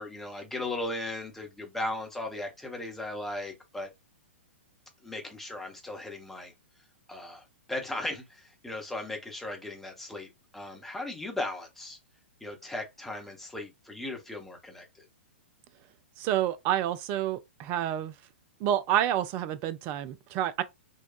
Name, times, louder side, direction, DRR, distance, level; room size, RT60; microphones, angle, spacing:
voice 1, 0.0-3.9 5.0-6.5 7.1-12.0 12.4-15.1, left 2 dB, 5° left, 0.8 m, -37 dB
voice 2, 16.2-18.1 18.6-20.6, right 11 dB, 30° right, 0.3 m, -28 dB
4.0 x 2.2 x 2.3 m
figure-of-eight pair, 110°, 7 cm